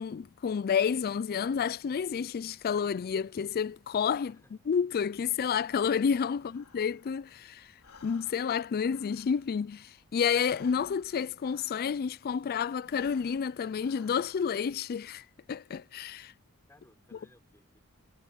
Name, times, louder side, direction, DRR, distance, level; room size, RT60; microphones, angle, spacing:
voice 1, 0.0-4.3 4.7-7.7 8.0-16.3, left 7 dB, 45° left, 0.3 m, -30 dB
voice 2, 4.2-4.6 6.3-6.6 16.7-17.8, left 1 dB, 10° left, 3.9 m, -62 dB
Breathing, 5.6-7.4 7.7-12.3 12.8-14.7, left 5 dB, 80° left, 3.5 m, -57 dB
head